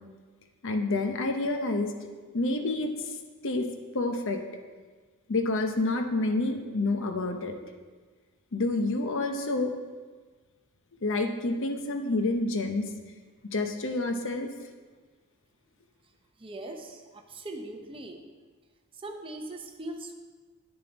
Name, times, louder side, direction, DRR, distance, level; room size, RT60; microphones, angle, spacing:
voice 1, 0.6-1.9 2.3-2.9 3.4-3.7 3.9-4.4 5.3-7.5 8.5-9.7 11.0-12.9 13.5-14.5, left 2 dB, 60° left, 5 dB, 0.7 m, -28 dB
voice 2, 16.4-18.2 18.9-20.1, right 1 dB, 25° right, 3 dB, 0.7 m, -40 dB
9.0 x 6.7 x 4.0 m, 1.4 s
head